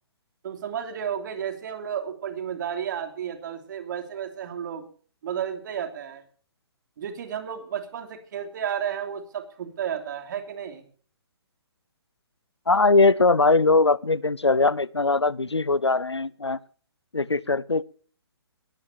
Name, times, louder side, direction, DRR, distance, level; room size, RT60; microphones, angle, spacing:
voice 1, 0.4-4.8 5.2-6.2 7.0-10.8, right 8 dB, 45° right, 7 dB, 3.2 m, -32 dB
voice 2, 12.7-16.6 17.1-17.8, left 3 dB, 90° left, 23 dB, 0.8 m, -21 dB
20.5 x 15.0 x 2.9 m, 0.43 s
figure-of-eight pair, 135°, 14 cm